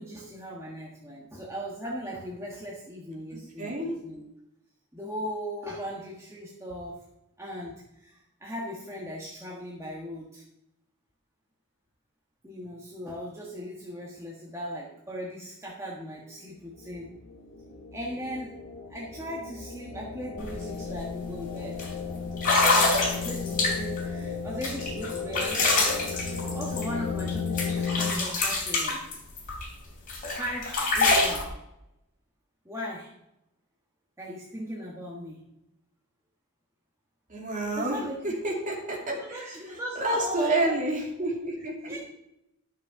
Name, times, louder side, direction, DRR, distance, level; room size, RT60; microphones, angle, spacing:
voice 1, 0.0-4.2 4.9-7.0 7.4-10.4 12.4-17.1 17.9-18.6 18.9-21.8 22.7-26.0 26.5-29.0 30.3-31.4 32.6-33.1 34.2-35.4 37.8-38.2 39.1-40.8 41.9-42.0, equal, 15° right, -4 dB, 1.4 m, -38 dB
voice 2, 3.6-3.9 37.3-39.6 40.0-41.9, right 1 dB, 35° right, -1 dB, 2.5 m, -29 dB
sound 1, 16.8-28.1, left 5 dB, 60° left, 1.6 m, -35 dB
sound 2, 20.4-20.5 20.9-21.2 21.8-21.9 22.4-24.0 24.6-27.3 27.6-29.7 30.1-31.4, left 3 dB, 40° left, 3.2 m, -26 dB
11.5 x 6.3 x 5.7 m, 0.87 s
head